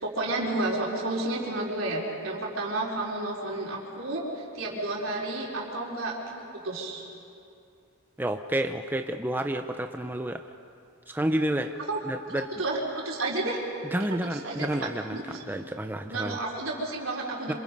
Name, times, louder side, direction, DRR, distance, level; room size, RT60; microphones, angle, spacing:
voice 1, 0.0-7.0 11.9-12.0 12.6-12.8 13.0-13.6 14.2-14.7 15.1-15.4 16.1-17.6, right 2 dB, 70° right, -3 dB, 4.6 m, -31 dB
voice 2, 8.2-10.4 11.1-11.7 12.0-12.5 13.9-16.4 17.5-17.6, right 1 dB, 10° right, 6 dB, 0.6 m, -30 dB
27.5 x 27.0 x 5.4 m, 2.5 s
head